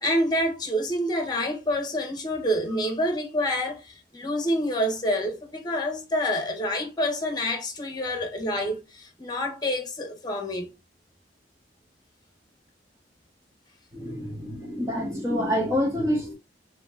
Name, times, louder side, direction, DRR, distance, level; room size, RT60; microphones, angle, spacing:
voice 1, 0.0-10.7, equal, 25° left, 1.2 m, -27 dB
voice 2, 13.9-16.3, equal, 20° right, 1.3 m, -27 dB
5.5 x 3.0 x 2.6 m
head